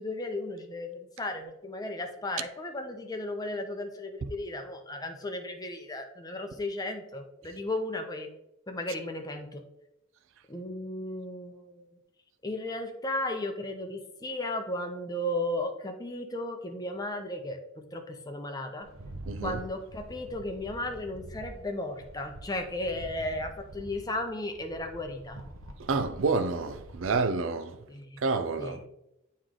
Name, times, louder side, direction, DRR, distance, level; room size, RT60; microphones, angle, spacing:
voice 1, 0.0-8.3 8.7-9.6 10.5-11.8 12.4-18.9 19.4-25.4 27.9-28.2 28.6-28.8, left 1 dB, 20° left, 0.7 m, -35 dB
Rattle, 18.8-27.3, right 1 dB, 85° right, 0.8 m, -46 dB
voice 2, 19.3-19.6 25.8-27.8 28.2-28.8, right 4 dB, 65° right, 0.4 m, -29 dB
8.9 x 3.2 x 3.7 m
head